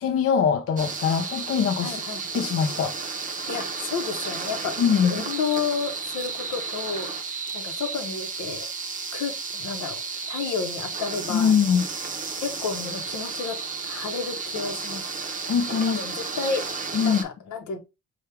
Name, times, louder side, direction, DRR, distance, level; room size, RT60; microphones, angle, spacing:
voice 1, 0.0-2.0 2.3-3.0 4.8-5.2 11.3-11.8 15.4-16.1 16.9-17.2, left 7 dB, 50° left, 0.5 m, -22 dB
sound 1, 0.8-17.2, right 4 dB, 25° right, 0.7 m, -33 dB
voice 2, 1.8-2.2 3.5-7.2 7.5-8.7 9.1-10.0 10.3-11.6 12.4-13.6 13.8-15.0 15.8-16.7 17.0-17.8, left 6 dB, 75° left, 0.9 m, -31 dB
4.3 x 2.3 x 3.3 m
cardioid pair, 90°, 30 cm